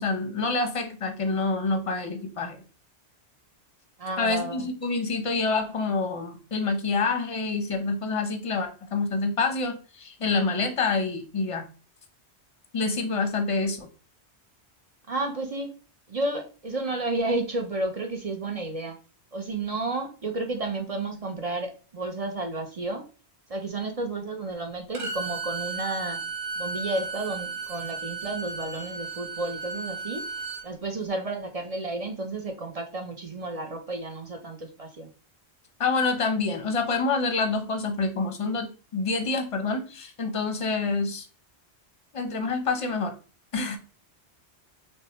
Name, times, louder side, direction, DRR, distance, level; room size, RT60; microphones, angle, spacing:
voice 1, 0.0-2.6 4.2-11.6 12.7-13.9 35.8-41.3 42.1-43.1 43.5-43.8, left 3 dB, 35° left, 6 dB, 0.7 m, -27 dB
voice 2, 4.0-4.7 15.1-15.7 16.1-19.0 19.3-23.1 23.5-26.2 26.6-30.2 30.6-35.1, right 2 dB, 40° right, 4 dB, 0.6 m, -32 dB
Bowed string instrument, 24.9-30.7, right 3 dB, 65° right, 1.0 m, -34 dB
6.2 x 2.2 x 2.9 m, 0.35 s
omnidirectional pair, 1.1 m